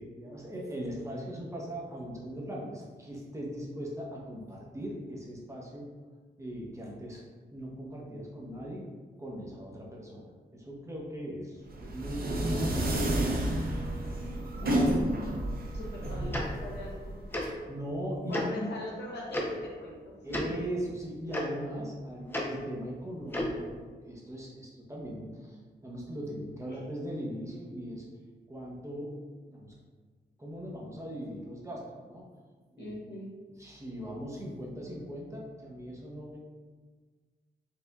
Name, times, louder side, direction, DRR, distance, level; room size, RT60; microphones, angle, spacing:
voice 1, 0.0-5.9 6.4-7.2 7.5-8.9 9.2-12.9 17.7-18.7 20.2-28.1 28.5-29.2 29.5-29.7 30.4-32.2 32.7-32.9 33.6-36.4, equal, 15° right, -4 dB, 0.8 m, -39 dB
sound 1, 11.7-17.5, right 1 dB, 55° right, 0.7 m, -30 dB
voice 2, 14.6-15.2 15.7-17.3 18.3-20.6 26.7-26.8 32.8-33.3, left 1 dB, 70° left, -3 dB, 0.8 m, -41 dB
Tick-tock, 16.3-16.4 17.3-17.4 18.3-18.4 19.3-19.4 20.3-20.4 21.3-21.4 22.3-22.4 23.3-23.5, left 1 dB, 10° left, 0.5 m, -31 dB
4.4 x 2.5 x 2.3 m, 1.4 s
cardioid pair, 80°, 19 cm